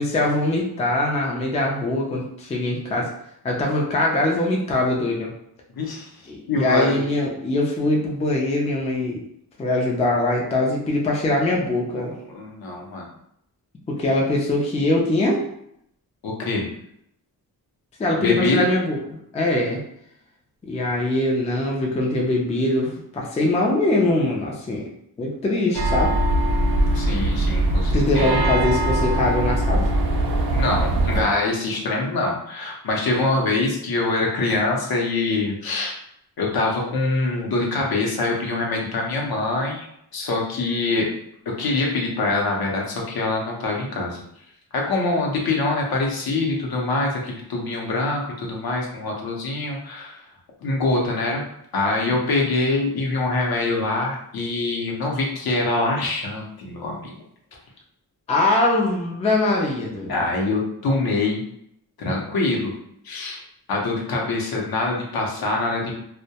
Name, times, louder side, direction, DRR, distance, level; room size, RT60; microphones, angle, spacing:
voice 1, 0.0-3.1 3.4-5.3 6.3-9.2 9.6-12.1 13.9-15.4 18.0-19.8 20.7-24.9 25.2-26.1 27.9-29.8 52.2-52.5 58.3-60.2, left 2 dB, 20° left, -2 dB, 0.3 m, -22 dB
voice 2, 5.7-6.1 6.5-7.0 12.3-13.1 16.2-16.7 18.2-18.7 26.9-28.3 30.5-35.9 36.4-39.9 40.1-41.1 41.5-44.2 44.7-50.2 50.6-51.4 51.7-57.1 60.1-61.4 62.0-62.7 63.0-63.4 63.7-66.0, left 2 dB, 65° left, -1 dB, 0.7 m, -24 dB
sound 1, 25.7-31.2, right 1 dB, 65° right, 0.5 m, -21 dB
2.2 x 2.1 x 2.8 m, 0.74 s
wide cardioid pair, 140°, 39 cm